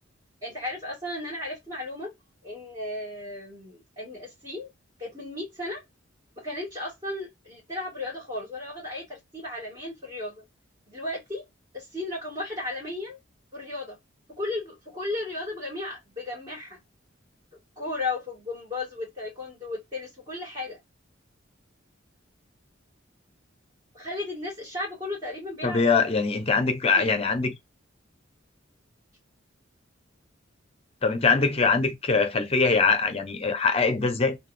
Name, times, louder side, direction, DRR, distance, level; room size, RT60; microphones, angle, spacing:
voice 1, 0.4-2.1 2.4-4.7 5.0-5.8 6.4-10.4 10.9-11.4 11.7-13.2 13.5-14.0 14.3-16.8 17.8-20.8 23.9-25.9 27.0-27.1, left 2 dB, 25° right, 2.0 m, -35 dB
voice 2, 25.6-27.5 31.0-34.4, left 4 dB, 30° left, 0.6 m, -23 dB
3.4 x 2.7 x 2.4 m
head